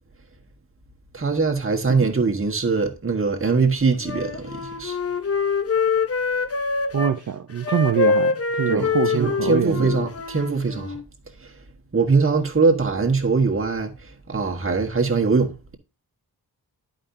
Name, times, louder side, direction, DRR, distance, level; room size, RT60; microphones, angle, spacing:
voice 1, 1.1-5.0 8.7-11.0 11.9-15.8, right 4 dB, 35° right, 1.4 m, -22 dB
Wind instrument woodwind instrument, 4.0-7.1 7.6-11.0, left 5 dB, 35° left, 0.8 m, -25 dB
voice 2, 6.9-9.9, right 8 dB, 50° right, 0.6 m, -24 dB
11.0 x 5.1 x 2.6 m
wide cardioid pair, 110°, 39 cm